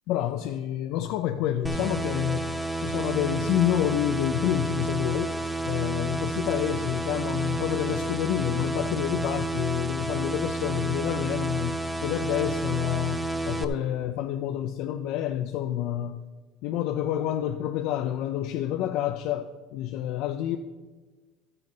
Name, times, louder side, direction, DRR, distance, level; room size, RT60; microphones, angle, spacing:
voice 1, 0.1-2.5 2.8-5.3 5.6-16.2 16.6-20.6, left 11 dB, 65° left, 7 dB, 0.4 m, -28 dB
sound 1, 1.6-13.6, right 2 dB, 5° right, 0.5 m, -30 dB
13.0 x 7.7 x 3.9 m, 1.3 s
cardioid pair, 140°, 0 cm